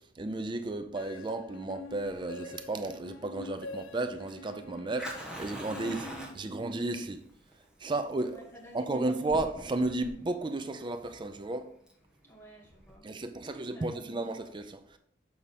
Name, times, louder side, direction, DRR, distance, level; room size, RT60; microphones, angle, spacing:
voice 1, 0.2-6.1 6.3-7.2 7.8-8.4 8.7-11.7 13.0-15.0, right 2 dB, 25° right, 0.4 m, -33 dB
sound 1, 1.0-6.8, left 4 dB, 75° left, 0.4 m, -46 dB
Fire, 1.9-13.0, equal, 5° right, 1.1 m, -46 dB
voice 2, 5.8-7.0 8.2-9.2 12.2-13.1 13.4-14.2, right 1 dB, 10° left, 2.0 m, -51 dB
7.1 x 4.9 x 4.1 m
head